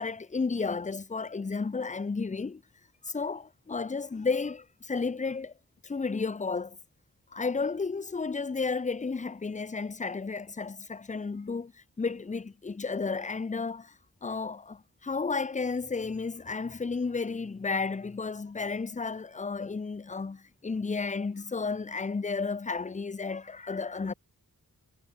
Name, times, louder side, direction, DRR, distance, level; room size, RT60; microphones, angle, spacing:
voice 1, 0.0-2.6 3.0-5.5 5.8-6.8 7.3-11.7 12.0-13.9 14.2-24.1, left 4 dB, 20° left, 0.5 m, -32 dB
wide cardioid pair, 80°, 35 cm